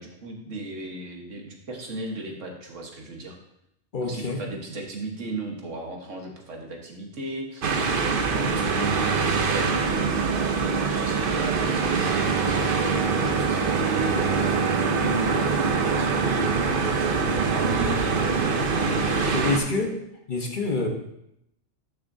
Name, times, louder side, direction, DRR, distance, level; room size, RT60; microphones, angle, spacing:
voice 1, 0.0-3.4 4.0-7.7 8.1-19.2 19.8-19.9, right 2 dB, 85° right, 1 dB, 1.7 m, -36 dB
voice 2, 3.9-4.4 19.2-19.9 20.3-20.9, left 3 dB, 45° left, 2 dB, 1.1 m, -27 dB
sound 1, 7.6-19.6, right 5 dB, 50° right, 0.9 m, -24 dB
12.0 x 6.4 x 2.7 m, 0.79 s
omnidirectional pair, 1.2 m